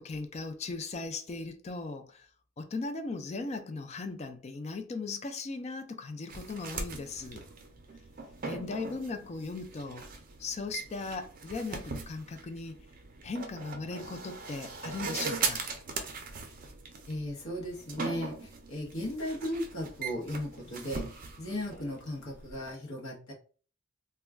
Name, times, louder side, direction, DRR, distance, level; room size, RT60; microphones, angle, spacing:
voice 1, 0.0-2.3 2.6-7.5 8.4-10.1 10.4-12.8 13.2-15.7, left 3 dB, 30° left, 0.3 m, -38 dB
sound 1, 6.3-22.7, right 4 dB, 40° right, 0.5 m, -40 dB
voice 2, 17.1-21.0 21.4-23.3, left 1 dB, 75° left, 0.9 m, -36 dB
2.2 x 2.2 x 3.4 m
head